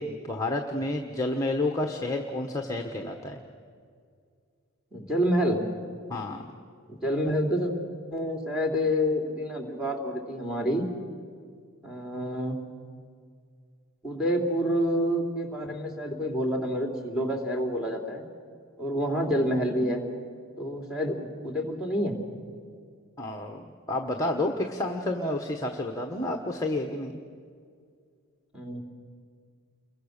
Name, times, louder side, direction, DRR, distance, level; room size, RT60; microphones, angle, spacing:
voice 1, 0.0-3.4 6.1-6.4 23.2-27.1, left 2 dB, 15° left, 2 dB, 1.2 m, -30 dB
voice 2, 4.9-5.6 6.9-7.7 8.1-10.9 11.8-12.6 14.0-18.2 18.8-20.0 20.6-22.2 28.5-28.8, equal, 5° right, 1 dB, 3.2 m, -28 dB
29.0 x 23.5 x 6.7 m, 2.2 s
head